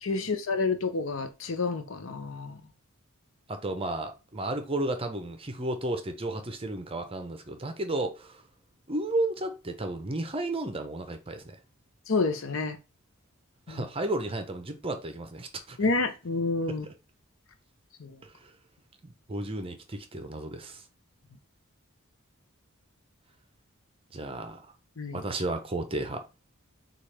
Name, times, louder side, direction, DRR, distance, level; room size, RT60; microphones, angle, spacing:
voice 1, 0.0-2.6 12.1-12.8 13.7-13.8 15.8-16.9 18.0-18.2 25.0-25.2, left 3 dB, 65° left, 0.7 m, -29 dB
voice 2, 3.5-8.4 8.9-11.6 13.7-15.8 16.7-16.8 18.2-18.5 19.0-20.8 24.1-24.6 25.1-26.2, right 2 dB, 25° right, 0.6 m, -33 dB
6.6 x 2.4 x 3.3 m
head